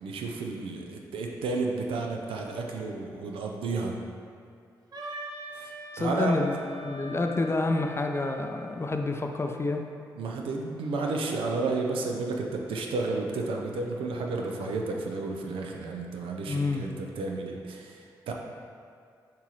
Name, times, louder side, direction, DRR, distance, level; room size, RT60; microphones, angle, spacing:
voice 1, 0.0-4.0 5.5-6.3 10.2-18.3, right 3 dB, 75° right, 1 dB, 0.5 m, -32 dB
Wind instrument woodwind instrument, 4.9-8.8, equal, 45° right, 0.8 m, -42 dB
voice 2, 5.9-9.8 16.5-16.8, left 2 dB, 30° left, 4 dB, 0.5 m, -28 dB
5.9 x 2.9 x 3.1 m, 2.3 s
hypercardioid pair, 40°, 9 cm